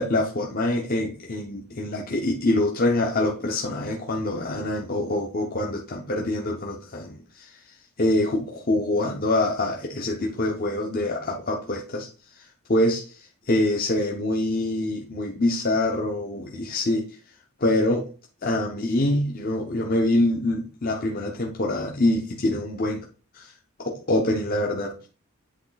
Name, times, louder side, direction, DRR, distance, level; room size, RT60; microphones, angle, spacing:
voice 1, 0.0-12.1 12.4-17.2 17.6-18.1 18.4-23.1 23.3-23.5 23.8-25.1, left 1 dB, 40° left, 0 dB, 0.7 m, -25 dB
8.3 x 3.2 x 4.0 m, 0.36 s
head